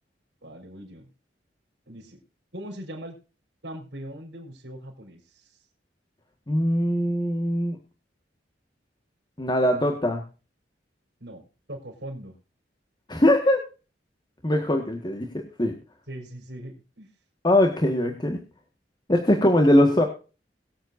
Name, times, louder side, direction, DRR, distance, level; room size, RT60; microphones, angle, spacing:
voice 1, 0.4-1.1 1.9-2.2 2.5-3.1 3.6-5.6 11.2-11.4 11.7-12.3 16.1-17.1, right 1 dB, 85° right, -1 dB, 4.1 m, -40 dB
voice 2, 6.5-7.8 9.4-10.2 13.1-13.6 14.4-15.7 17.4-18.4 19.1-20.0, left 1 dB, 25° left, 3 dB, 1.6 m, -21 dB
22.5 x 7.9 x 2.6 m, 0.33 s
head